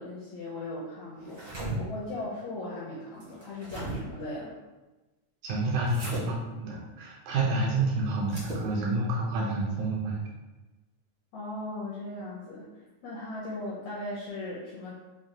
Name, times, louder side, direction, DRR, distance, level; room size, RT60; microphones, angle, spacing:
voice 1, 0.0-4.6 11.3-12.7 13.0-14.9, left 2 dB, 80° left, -6 dB, 1.6 m, -38 dB
sound 1, 1.2-1.7 3.2-4.0 5.9-6.2 8.2-8.7, right 2 dB, 65° right, 0.8 m, -37 dB
voice 2, 5.4-10.2, right 2 dB, 80° right, -3 dB, 1.9 m, -29 dB
5.9 x 2.2 x 2.7 m, 1.1 s
omnidirectional pair, 3.8 m